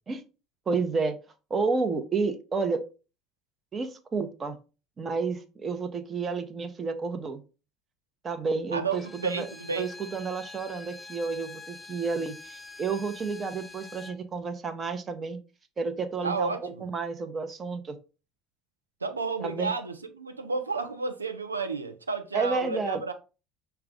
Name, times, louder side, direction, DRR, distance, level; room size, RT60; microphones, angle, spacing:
voice 1, 0.7-1.1 1.5-2.8 3.7-4.6 5.0-7.4 8.2-9.5 9.8-15.4 15.8-18.0 19.4-19.7 22.3-23.1, right 4 dB, 30° right, 0.7 m, -31 dB
voice 2, 8.7-9.9 16.2-16.8 19.0-23.1, right 4 dB, 90° right, 0.5 m, -31 dB
Bowed string instrument, 8.9-14.2, left 3 dB, 15° left, 0.5 m, -46 dB
5.7 x 2.3 x 3.6 m
figure-of-eight pair, 65°, 0 cm